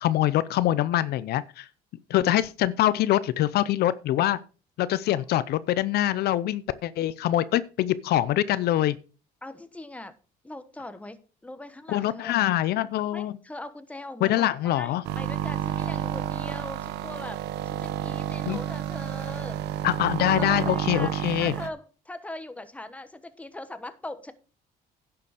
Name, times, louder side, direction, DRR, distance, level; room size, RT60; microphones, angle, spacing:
voice 1, 0.0-1.7 2.1-4.4 4.8-9.0 11.9-13.3 14.2-15.0 18.5-18.6 19.8-21.5, left 13 dB, 70° left, 0.6 m, -24 dB
voice 2, 9.4-10.2 10.4-12.4 13.1-19.6 20.4-24.3, left 2 dB, 10° left, 1.1 m, -41 dB
sound 1, 15.1-21.7, right 11 dB, 80° right, 1.0 m, -30 dB
10.5 x 7.0 x 4.9 m
cardioid pair, 110°, 17 cm